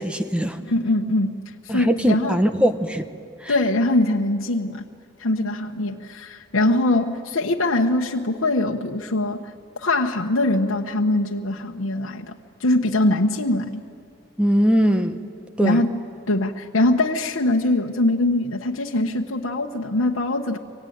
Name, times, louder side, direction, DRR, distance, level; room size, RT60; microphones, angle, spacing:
voice 1, 0.0-0.6 1.7-3.0 3.4-3.5 14.4-15.2 15.6-15.8, equal, 5° right, 8 dB, 1.1 m, -20 dB
voice 2, 0.7-1.4 1.6-2.4 3.5-4.8 5.2-9.5 9.8-13.8 15.6-15.9 16.3-20.6, left 2 dB, 85° left, 1 dB, 1.2 m, -22 dB
26.0 x 24.0 x 9.4 m, 2.3 s
head